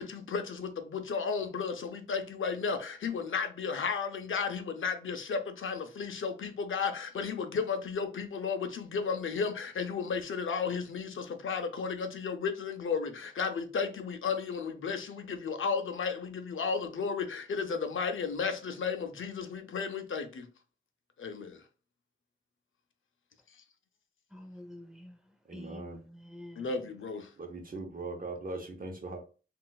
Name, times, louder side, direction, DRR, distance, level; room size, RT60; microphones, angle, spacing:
voice 1, 0.0-20.5 21.2-21.5 26.6-27.3, left 5 dB, 75° left, 0.5 m, -33 dB
voice 2, 24.3-25.2 25.5-26.7, left 1 dB, ahead, 0.7 m, -48 dB
voice 3, 25.5-26.0 27.4-29.2, right 3 dB, 45° right, 0.8 m, -40 dB
3.8 x 2.4 x 2.3 m
wide cardioid pair, 125°, 21 cm